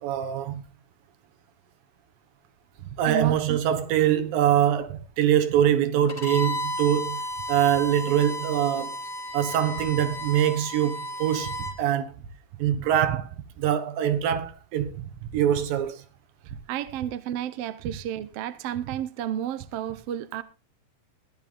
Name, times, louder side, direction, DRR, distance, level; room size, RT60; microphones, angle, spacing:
voice 1, 0.0-0.6 3.0-7.2 7.5-8.9 9.3-12.1 12.6-16.0, right 10 dB, 85° right, 3.1 m, -24 dB
voice 2, 3.1-3.6 16.7-20.4, right 10 dB, 70° right, 1.5 m, -31 dB
Bowed string instrument, 6.1-11.8, left 1 dB, 15° left, 1.9 m, -33 dB
16.0 x 11.5 x 3.8 m
omnidirectional pair, 4.0 m